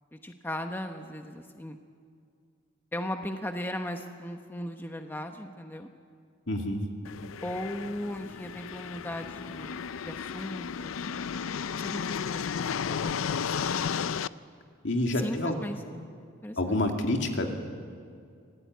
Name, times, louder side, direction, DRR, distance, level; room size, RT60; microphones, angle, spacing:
voice 1, 0.1-1.8 2.9-5.9 7.4-10.9 11.7-13.8 15.1-15.8 16.4-16.8, left 1 dB, 10° left, 5 dB, 0.9 m, -37 dB
voice 2, 6.5-6.8 14.8-15.6 16.6-17.5, left 1 dB, 60° left, 3 dB, 2.5 m, -28 dB
sound 1, 7.1-14.3, left 7 dB, 85° left, 0.5 m, -33 dB
25.5 x 17.5 x 9.4 m, 2.3 s
head